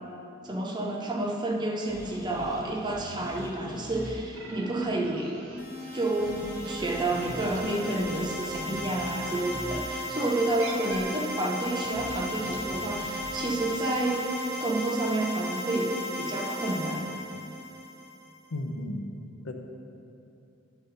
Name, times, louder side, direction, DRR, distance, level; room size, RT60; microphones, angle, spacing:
voice 1, 0.4-5.4 5.9-14.3 14.6-17.2, right 2 dB, 20° right, 1 dB, 0.6 m, -30 dB
sound 1, 1.9-16.0, equal, 15° left, 0.8 m, -44 dB
sound 2, 4.3-9.6 10.1-16.0, right 4 dB, 75° right, 0.6 m, -47 dB
sound 3, 5.6-18.3, equal, 50° left, 1.5 m, -36 dB
voice 2, 18.5-19.0 19.4-19.5, left 1 dB, 85° left, 3 dB, 0.7 m, -33 dB
11.0 x 4.0 x 4.0 m, 2.7 s
head